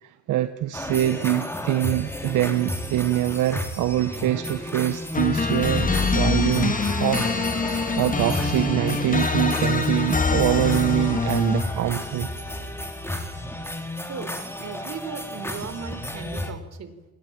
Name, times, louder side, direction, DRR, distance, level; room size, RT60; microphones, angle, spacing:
voice 1, 0.0-7.3 7.6-12.3, right 13 dB, 85° right, 10 dB, 1.4 m, -24 dB
sound 1, 0.7-16.5, left 1 dB, 10° left, 4.3 m, -33 dB
sound 2, 5.1-11.9, left 4 dB, 25° left, 2.9 m, -24 dB
voice 2, 14.0-17.1, right 6 dB, 60° right, 11 dB, 4.4 m, -37 dB
28.5 x 20.5 x 9.0 m, 1.1 s
cardioid pair, 90°, 30 cm